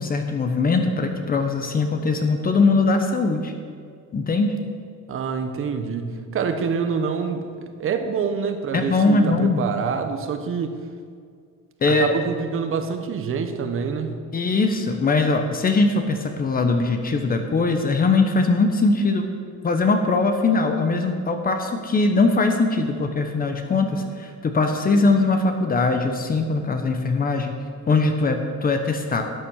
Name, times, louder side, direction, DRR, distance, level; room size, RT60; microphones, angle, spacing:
voice 1, 0.0-3.5 4.1-4.6 8.7-9.6 11.8-12.1 14.3-19.3 19.6-27.5 27.9-29.2, left 3 dB, 30° left, 5 dB, 1.1 m, -21 dB
voice 2, 5.1-10.8 11.9-14.1, right 6 dB, 45° right, 7 dB, 1.2 m, -26 dB
12.5 x 8.7 x 6.5 m, 2.1 s
cardioid pair, 135°, 29 cm